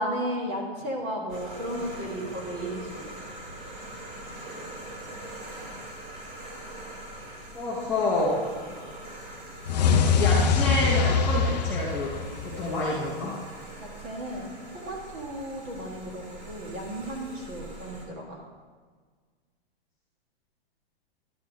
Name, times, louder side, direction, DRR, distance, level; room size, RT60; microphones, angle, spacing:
voice 1, 0.0-3.1 13.8-18.4, equal, 20° right, -1 dB, 1.4 m, -34 dB
sound 1, 1.3-18.1, right 1 dB, 55° right, 2.5 m, -42 dB
voice 2, 7.5-8.4 9.9-12.1 12.4-13.3, left 2 dB, 10° left, -8 dB, 1.0 m, -28 dB
sound 2, 9.7-12.8, left 5 dB, 45° left, 0.6 m, -23 dB
11.5 x 4.4 x 7.2 m, 1.5 s
hypercardioid pair, 180°, 31 cm